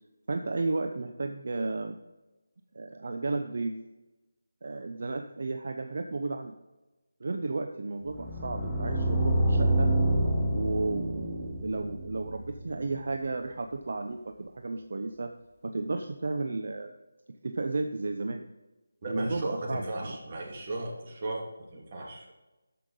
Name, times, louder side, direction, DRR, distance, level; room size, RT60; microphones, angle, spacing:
voice 1, 0.3-2.0 2.7-3.7 4.6-6.5 7.2-9.9 10.5-15.3 15.6-16.9 17.3-18.4 19.1-20.2, right 3 dB, 55° right, 5 dB, 0.7 m, -33 dB
sound 1, 8.0-13.0, right 1 dB, 5° right, 1.2 m, -28 dB
voice 2, 19.0-22.3, right 1 dB, 35° right, -2 dB, 2.6 m, -36 dB
13.0 x 5.9 x 3.8 m, 1.1 s
figure-of-eight pair, 165°, 0 cm